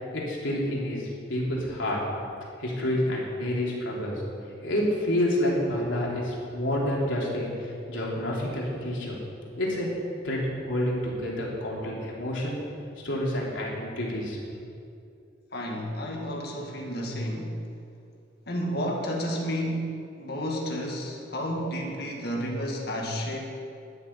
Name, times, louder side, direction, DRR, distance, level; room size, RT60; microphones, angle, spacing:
voice 1, 0.1-2.0 2.6-4.2 4.6-9.1 9.6-9.9 10.2-10.4 10.6-12.6 13.0-14.4, left 1 dB, 85° left, -4 dB, 3.5 m, -28 dB
voice 2, 15.5-17.6 18.5-23.4, equal, 55° left, 0 dB, 2.0 m, -31 dB
12.5 x 6.7 x 9.8 m, 2.6 s
head